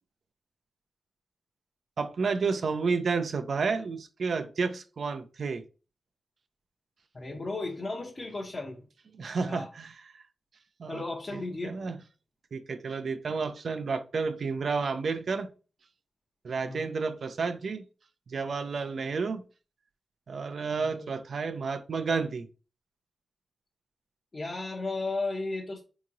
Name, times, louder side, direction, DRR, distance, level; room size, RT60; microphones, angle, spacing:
voice 1, 2.0-5.6 9.1-10.2 10.8-11.0 11.3-12.0 12.5-15.5 16.4-17.9 18.3-19.4 20.3-22.5, right 4 dB, 70° right, 0.4 m, -31 dB
voice 2, 7.1-8.9 9.4-9.7 10.9-11.8 16.6-16.9 19.1-19.2 20.8-21.1 24.3-25.8, left 3 dB, 40° left, 0.8 m, -35 dB
3.7 x 2.9 x 2.5 m
cardioid pair, 60°, 0 cm